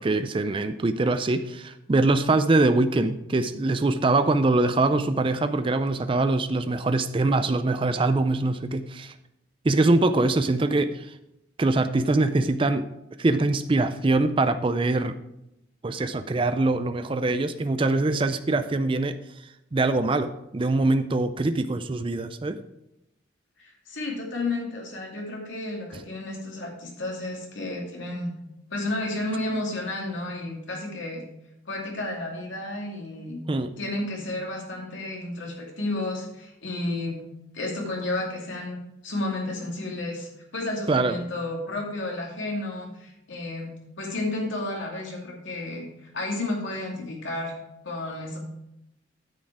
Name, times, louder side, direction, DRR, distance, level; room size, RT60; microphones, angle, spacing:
voice 1, 0.0-9.1 9.6-11.1 11.6-12.9 13.2-15.1 15.8-19.1 19.7-22.6 33.5-33.7 40.9-41.1, right 2 dB, 25° right, 10 dB, 0.4 m, -23 dB
voice 2, 23.6-28.3 28.7-31.2 31.7-33.4 33.8-37.2 37.5-38.8 39.0-43.7 44.0-47.6 47.8-48.4, left 2 dB, 70° left, -1 dB, 2.4 m, -32 dB
9.3 x 6.4 x 4.8 m, 0.85 s
head